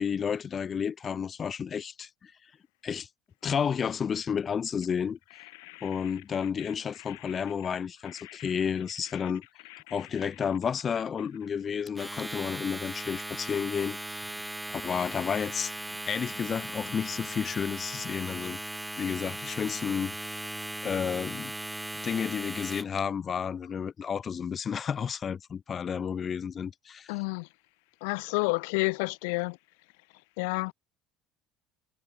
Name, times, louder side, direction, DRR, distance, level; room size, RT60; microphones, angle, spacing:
voice 1, 0.0-2.3 2.8-3.1 3.4-5.2 5.8-9.4 9.9-14.4 14.7-15.7 16.1-18.6 19.0-20.1 20.8-21.5 22.0-27.1, left 7 dB, 40° left, 1.7 m, -31 dB
Domestic sounds home sounds, 11.9-23.0, right 1 dB, 5° right, 2.1 m, -38 dB
voice 2, 27.1-27.4 28.0-29.5 30.4-30.7, left 31 dB, 75° left, 0.8 m, -29 dB
hypercardioid pair, 65°, 0 cm